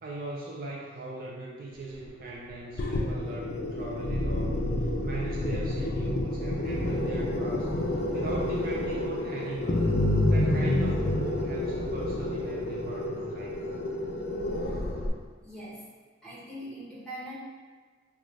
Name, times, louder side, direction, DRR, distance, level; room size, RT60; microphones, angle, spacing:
voice 1, 0.0-4.7 5.0-7.7 8.1-10.0 10.3-13.6, right 2 dB, 45° right, -4 dB, 0.4 m, -39 dB
sound 1, 2.8-15.1, left 1 dB, 50° left, 0.4 m, -29 dB
voice 2, 15.4-15.8 16.2-17.3, equal, 5° left, -10 dB, 1.0 m, -41 dB
3.8 x 2.3 x 3.2 m, 1.5 s
head